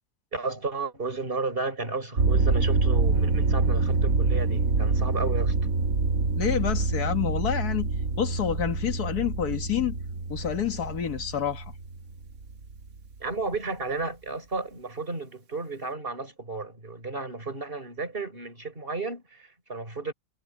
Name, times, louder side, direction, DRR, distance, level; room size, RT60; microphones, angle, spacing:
voice 1, 0.3-5.5 13.2-20.1, right 3 dB, 35° right, 5.9 m, -33 dB
sound 1, 2.2-13.0, right 3 dB, 65° right, 2.0 m, -26 dB
voice 2, 6.4-7.9 8.2-10.0 10.3-11.7, left 9 dB, 90° left, 2.0 m, -28 dB
omnidirectional pair, 1.6 m